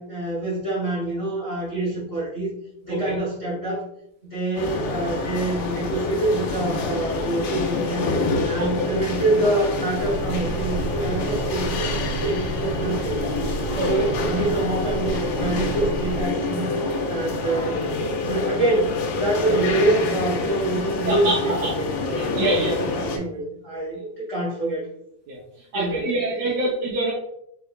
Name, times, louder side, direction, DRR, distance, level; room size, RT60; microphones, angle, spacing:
voice 1, 0.0-2.5 2.8-3.8 4.2-8.1 8.4-13.2 13.8-16.7 17.1-17.9 18.2-24.9 25.7-26.1, right 1 dB, 60° left, -9 dB, 0.7 m, -26 dB
sound 1, 4.6-23.2, left 3 dB, 90° left, 2.6 m, -27 dB
sound 2, 10.0-16.3, right 3 dB, 90° right, 1.1 m, -31 dB
voice 2, 13.8-14.1 21.0-21.7 22.1-22.8 25.3-25.4 25.7-27.1, right 2 dB, 70° right, -3 dB, 1.7 m, -25 dB
6.6 x 3.2 x 2.3 m, 0.76 s
omnidirectional pair, 4.0 m